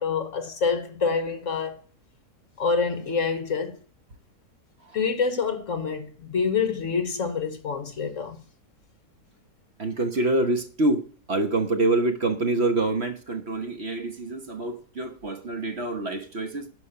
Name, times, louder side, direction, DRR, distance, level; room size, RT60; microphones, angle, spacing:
voice 1, 0.0-1.8 2.6-3.8 4.9-8.4, left 5 dB, 55° left, 1.5 m, -26 dB
voice 2, 9.8-16.7, right 2 dB, 45° right, 1.3 m, -26 dB
11.5 x 5.4 x 7.8 m
omnidirectional pair, 1.7 m